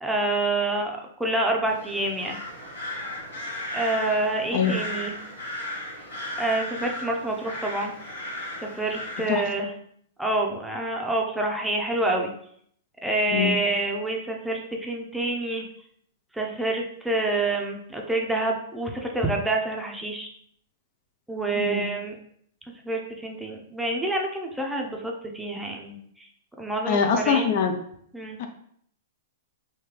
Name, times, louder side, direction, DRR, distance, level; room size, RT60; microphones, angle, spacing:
voice 1, 0.0-2.4 3.7-5.2 6.4-7.9 8.6-9.7 10.2-12.3 13.0-15.6 16.3-20.3 21.3-22.2 22.8-26.3 26.6-27.5 28.1-28.4, right 2 dB, 5° right, 0 dB, 0.6 m, -27 dB
sound 1, 1.6-9.5, left 1 dB, 75° left, 1.3 m, -35 dB
voice 2, 21.6-21.9 26.9-27.7 28.4-28.5, left 6 dB, 50° left, 5 dB, 0.4 m, -23 dB
3.3 x 2.7 x 3.2 m, 0.66 s
figure-of-eight pair, 105°, 0 cm